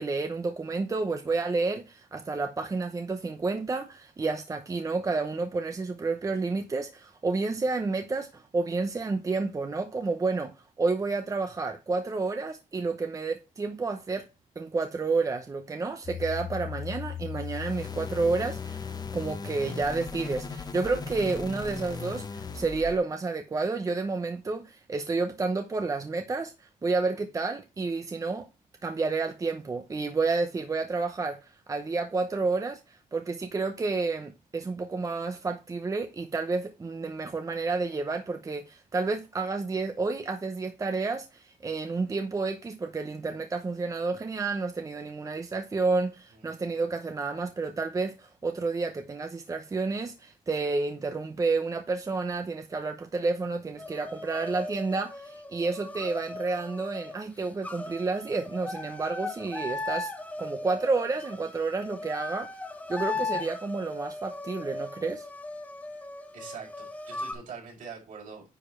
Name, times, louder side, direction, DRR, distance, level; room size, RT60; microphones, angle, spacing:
voice 1, 0.0-10.5 10.8-14.2 14.6-28.5 28.8-60.1 60.4-62.5 62.9-65.3, right 3 dB, 20° right, 0.8 m, -30 dB
sound 1, 16.0-23.0, left 6 dB, 25° left, 1.0 m, -37 dB
sound 2, 53.8-67.3, left 2 dB, 10° left, 1.4 m, -38 dB
voice 2, 66.3-68.5, right 5 dB, 60° right, 4.9 m, -43 dB
9.9 x 4.9 x 4.4 m
cardioid pair, 140°, 15 cm